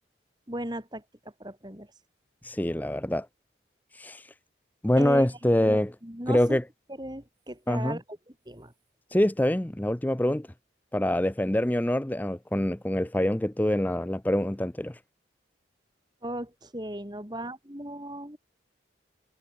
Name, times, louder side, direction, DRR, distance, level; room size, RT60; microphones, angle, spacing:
voice 1, 0.5-1.0 1.4-1.9 5.0-6.6 7.0-8.0 8.5-8.7 16.2-18.4, right 1 dB, 20° right, 3.9 m, -36 dB
voice 2, 2.4-3.3 3.9-4.3 4.8-5.9 6.3-6.6 7.7-8.0 9.1-10.5 10.9-15.0, left 1 dB, 10° left, 0.5 m, -25 dB
head